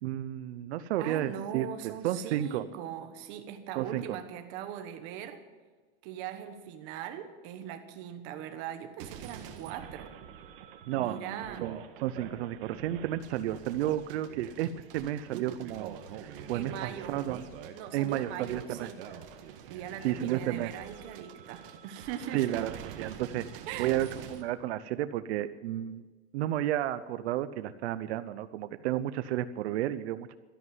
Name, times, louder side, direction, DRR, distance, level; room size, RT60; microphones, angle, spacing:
voice 1, 0.0-2.6 3.8-4.2 10.9-17.4 17.9-18.9 20.0-20.7 22.3-26.0 26.3-30.3, right 12 dB, 80° right, 13 dB, 0.7 m, -32 dB
voice 2, 1.0-5.4 6.0-10.1 10.9-11.7 16.5-17.2 17.7-19.0 19.7-22.6 23.7-24.0, right 9 dB, 35° right, 7 dB, 1.3 m, -40 dB
sound 1, 9.0-24.4, right 9 dB, 55° right, 1.7 m, -45 dB
13.0 x 11.0 x 9.5 m, 1.4 s
supercardioid pair, 180°, 32 cm